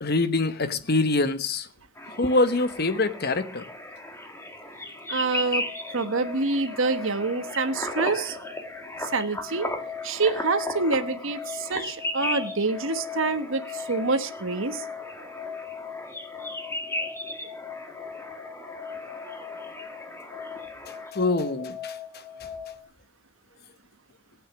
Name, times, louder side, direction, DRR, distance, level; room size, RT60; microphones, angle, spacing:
voice 1, 0.0-1.7 2.2-3.6 21.1-21.9, left 2 dB, 45° left, 1.0 m, -24 dB
sound 1, 2.0-21.1, left 1 dB, 10° left, 1.5 m, -37 dB
sound 2, 4.7-22.8, left 7 dB, 85° left, 3.4 m, -40 dB
voice 2, 5.1-5.6 5.9-8.4 9.0-9.7 10.0-14.8, right 3 dB, 60° right, 1.2 m, -26 dB
16.0 x 9.2 x 6.0 m
head